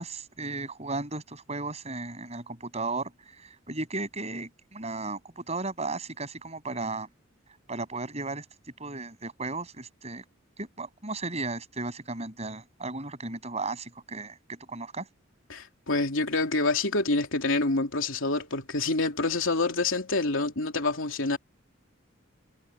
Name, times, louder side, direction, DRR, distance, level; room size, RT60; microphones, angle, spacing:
voice 1, 0.0-3.1 3.4-7.1 7.7-8.4 8.8-10.2 10.6-15.1, right 3 dB, 35° right, 7.8 m, -35 dB
voice 2, 15.5-21.4, left 3 dB, 70° left, 3.3 m, -27 dB
head